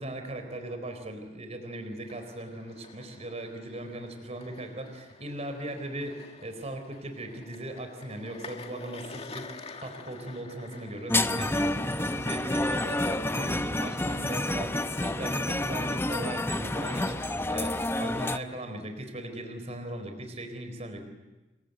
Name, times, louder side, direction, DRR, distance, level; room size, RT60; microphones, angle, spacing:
voice 1, 0.0-21.0, right 1 dB, 40° right, 7 dB, 4.0 m, -38 dB
sound 1, 1.8-18.7, left 3 dB, 35° left, 2.0 m, -50 dB
sound 2, 11.1-18.4, left 1 dB, 15° left, 0.8 m, -29 dB
28.0 x 23.0 x 8.0 m, 1.1 s
head